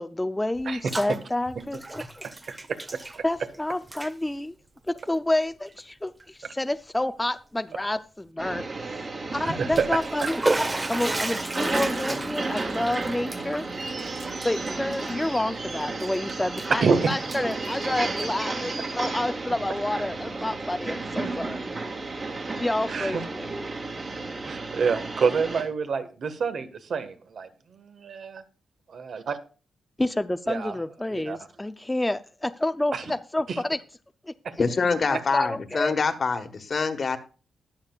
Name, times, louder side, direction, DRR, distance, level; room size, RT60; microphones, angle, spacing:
voice 1, 0.0-2.3 3.2-4.5 4.9-10.4 10.9-13.6 14.4-21.7 22.6-23.5 30.0-33.8 34.2-34.3 34.9-35.9, left 1 dB, 10° left, 10 dB, 0.5 m, -29 dB
Bathtub (filling or washing), 0.6-1.2 1.5-3.6 3.8-4.1 4.9-5.0 5.7-5.8 6.2-6.3 9.5-15.6 16.0-16.8 17.1-18.4, right 2 dB, 20° right, 1.0 m, -33 dB
voice 2, 2.9-3.2 6.4-6.5 9.4-9.8 16.8-17.1 18.8-18.9 22.9-23.2 24.4-28.4 28.9-29.4 30.5-30.7 31.1-31.4 32.9-33.0 33.5-33.6 34.4-34.5, right 5 dB, 60° right, 10 dB, 1.5 m, -27 dB
sound 1, 8.4-25.6, right 3 dB, 40° right, 2.7 m, -33 dB
voice 3, 34.6-37.2, left 4 dB, 45° left, 9 dB, 1.4 m, -25 dB
21.0 x 7.2 x 2.4 m, 0.36 s
wide cardioid pair, 115°, 0 cm